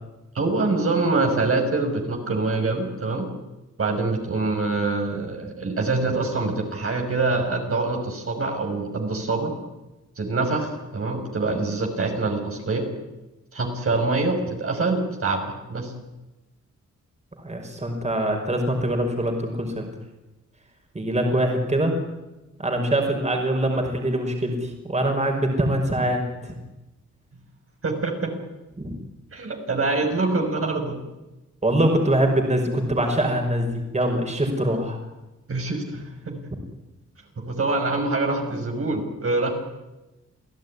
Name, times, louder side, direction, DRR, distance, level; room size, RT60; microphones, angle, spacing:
voice 1, 0.3-3.3 3.8-9.5 10.2-12.9 13.5-15.4 15.7-15.9 27.8-28.3 29.3-31.0 35.5-36.4 37.4-39.5, right 3 dB, 45° right, 2 dB, 5.8 m, -25 dB
voice 2, 17.4-19.9 20.9-22.0 22.6-26.6 28.8-28.9 31.6-35.0, right 1 dB, 20° right, 3 dB, 5.6 m, -23 dB
28.5 x 16.5 x 10.0 m, 1.0 s
cardioid pair, 95°, 30 cm